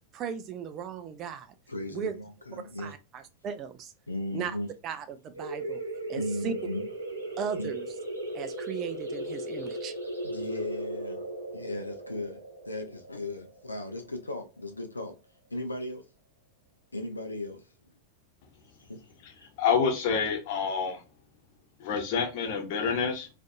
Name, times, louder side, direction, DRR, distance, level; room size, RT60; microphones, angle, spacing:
voice 1, 0.1-1.5 1.9-2.2 2.8-3.9 4.3-4.6 4.8-5.8 6.1-6.5 7.4-7.9 8.3-10.0, right 7 dB, 35° right, 0.4 m, -37 dB
voice 2, 1.7-2.1 2.5-2.9 4.1-4.7 6.2-6.9 7.6-7.7 10.2-11.3 11.5-12.4 12.7-15.1 15.5-16.0 16.9-17.6, left 1 dB, 80° left, 0.5 m, -36 dB
sound 1, 5.3-14.7, right 1 dB, 85° right, 0.7 m, -37 dB
voice 3, 19.2-21.0 21.8-23.3, left 6 dB, 45° left, 0.9 m, -28 dB
2.5 x 2.5 x 2.3 m
figure-of-eight pair, 90°, 0 cm